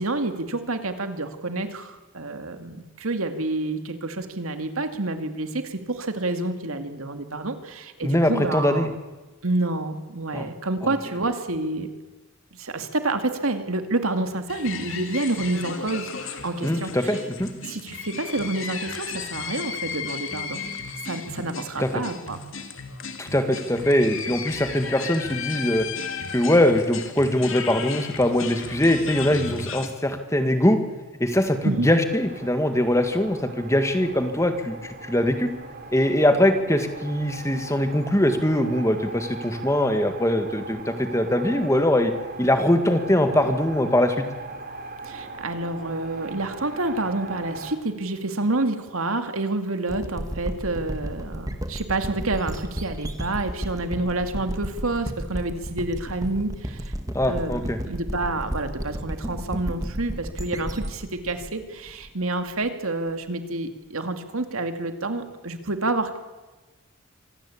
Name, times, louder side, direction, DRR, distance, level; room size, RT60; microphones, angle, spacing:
voice 1, 0.0-8.9 9.4-11.9 12.5-17.1 17.7-20.6 21.0-22.4 31.6-31.9 45.0-56.9 57.3-66.2, right 2 dB, 80° right, 7 dB, 2.4 m, -28 dB
voice 2, 8.0-8.9 10.3-10.5 10.8-10.9 16.6-17.5 21.8-21.9 23.2-25.9 26.3-30.8 31.2-35.5 35.9-42.1 42.4-44.2 57.1-57.8, left 1 dB, 15° left, 8 dB, 1.7 m, -22 dB
sound 1, 14.5-29.9, left 5 dB, 65° left, 2.5 m, -35 dB
sound 2, 31.3-47.8, right 3 dB, 45° right, 3.3 m, -39 dB
sound 3, 49.9-62.5, equal, 15° right, 1.7 m, -33 dB
25.5 x 18.0 x 8.6 m, 1.2 s
head